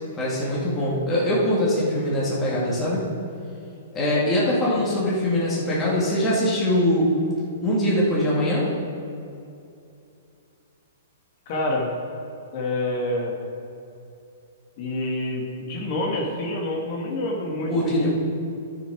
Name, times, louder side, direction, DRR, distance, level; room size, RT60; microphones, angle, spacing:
voice 1, 0.1-3.1 3.9-7.1 7.6-8.7 17.7-18.1, left 1 dB, 20° left, -7 dB, 2.2 m, -22 dB
voice 2, 11.5-11.9 12.5-13.3 14.8-18.1, left 1 dB, 45° left, 0 dB, 1.6 m, -27 dB
11.5 x 6.1 x 4.9 m, 2.6 s
hypercardioid pair, 145°, 0 cm